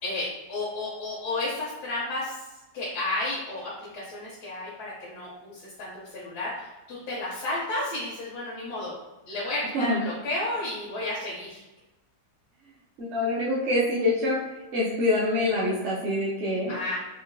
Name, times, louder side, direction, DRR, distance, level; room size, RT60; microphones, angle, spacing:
voice 1, 0.0-2.5 2.7-9.0 9.3-11.6 16.7-17.0, left 2 dB, 90° left, -6 dB, 1.2 m, -32 dB
voice 2, 13.0-14.4 14.7-16.8, left 1 dB, 60° right, -7 dB, 0.8 m, -25 dB
3.7 x 2.2 x 2.5 m, 1.1 s
omnidirectional pair, 1.6 m